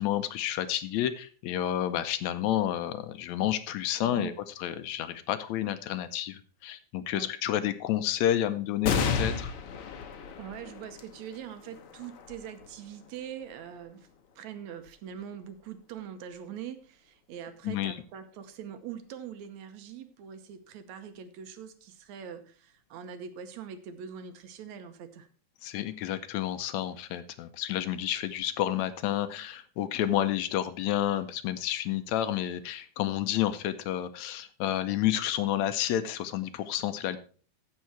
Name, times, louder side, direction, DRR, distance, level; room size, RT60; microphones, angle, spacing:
voice 1, 0.0-4.3 4.6-9.5 17.7-18.0 25.6-37.2, left 12 dB, 75° left, 11 dB, 1.9 m, -30 dB
sound 1, 8.8-15.7 16.3-16.4 17.6-18.1, left 6 dB, 60° left, 1.8 m, -35 dB
voice 2, 10.4-14.1 14.4-25.3, right 8 dB, 75° right, 9 dB, 2.2 m, -43 dB
15.0 x 5.7 x 4.5 m, 0.41 s
omnidirectional pair, 3.4 m